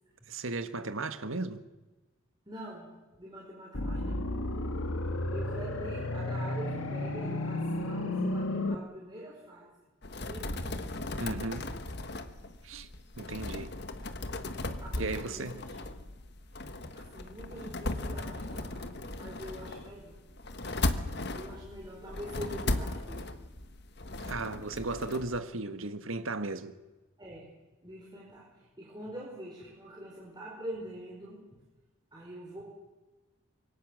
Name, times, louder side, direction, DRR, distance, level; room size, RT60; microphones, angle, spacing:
voice 1, 0.3-1.6 11.2-11.7 12.6-12.9 13.2-13.7 15.0-15.6 24.2-26.7, right 3 dB, 75° right, 1.6 m, -35 dB
voice 2, 2.5-2.9 3.2-4.4 5.3-9.7 10.3-10.9 14.8-15.9 16.7-20.2 21.3-23.3 27.2-27.5 27.8-31.6 32.1-32.6, equal, 20° right, 5.1 m, -45 dB
sound 1, 3.7-8.7, left 1 dB, 85° left, 1.9 m, -32 dB
sound 2, 10.0-25.4, left 2 dB, 55° left, 1.4 m, -37 dB
25.5 x 23.5 x 6.5 m
head